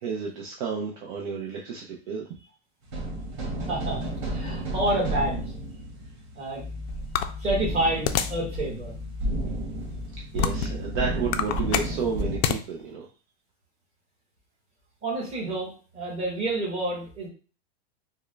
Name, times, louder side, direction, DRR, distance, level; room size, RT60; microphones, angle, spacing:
voice 1, 0.0-2.2 10.3-13.1, right 5 dB, 50° right, -1 dB, 0.6 m, -31 dB
sound 1, 2.9-12.4, right 1 dB, 70° right, 1.5 m, -32 dB
voice 2, 3.7-5.4 6.3-6.6 7.4-8.9 15.0-17.3, right 1 dB, 20° right, -4 dB, 1.3 m, -29 dB
sound 2, 6.6-12.5, left 4 dB, 5° left, 0.5 m, -41 dB
sound 3, 7.1-8.5 9.0-9.1 9.8-10.8 11.2-12.6, left 9 dB, 75° left, 0.5 m, -27 dB
3.5 x 2.2 x 3.2 m, 0.38 s
supercardioid pair, 160°, 32 cm